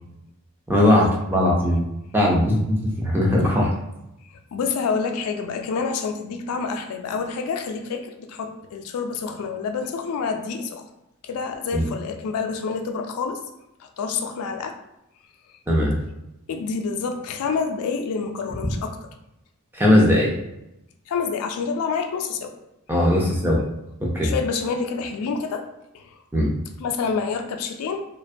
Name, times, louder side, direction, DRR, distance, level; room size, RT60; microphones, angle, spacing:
voice 1, 0.7-1.8 2.1-3.7 11.7-11.8 15.7-16.0 19.7-20.3 22.9-23.6 24.0-24.3 26.3-26.5, left 1 dB, 10° right, -3 dB, 0.4 m, -19 dB
voice 2, 4.5-10.9 11.2-13.4 13.8-14.8 16.5-19.0 21.1-22.5 24.2-25.7 25.9-26.2 26.8-28.1, left 5 dB, 80° left, 6 dB, 0.3 m, -28 dB
2.4 x 2.2 x 2.5 m, 0.88 s
head